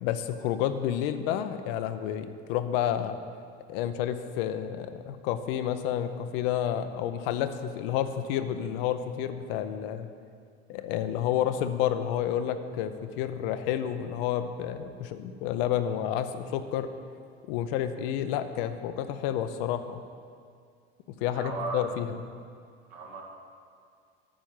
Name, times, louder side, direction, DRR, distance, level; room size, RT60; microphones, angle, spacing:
voice 1, 0.0-3.2 3.7-10.1 10.7-16.9 17.5-20.0 21.2-22.2, left 10 dB, 65° left, 10 dB, 0.7 m, -30 dB
voice 2, 21.3-21.8 22.9-23.2, right 4 dB, 65° right, -2 dB, 2.0 m, -35 dB
8.8 x 5.1 x 7.5 m, 2.2 s
hypercardioid pair, 70°, 30 cm